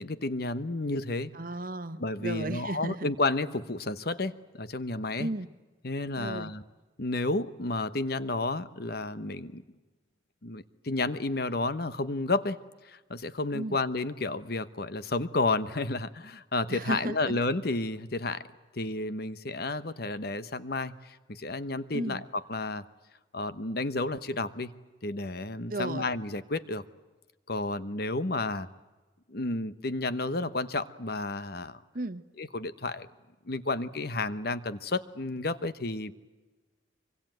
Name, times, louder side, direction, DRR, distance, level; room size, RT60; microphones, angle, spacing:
voice 1, 0.0-1.3 2.0-5.3 5.8-6.6 7.0-9.6 10.4-18.4 18.7-22.2 22.5-22.8 23.3-24.7 25.0-26.8 27.5-28.7 29.3-31.8 32.4-33.1 33.5-36.1, left 2 dB, 55° left, 13 dB, 1.1 m, -31 dB
voice 2, 1.3-3.1 5.2-5.5 6.2-6.5 13.5-13.8 16.7-17.4 21.9-22.2 25.7-26.1 31.9-32.2, right 2 dB, 45° right, 12 dB, 1.1 m, -34 dB
24.5 x 24.5 x 9.3 m, 1.2 s
head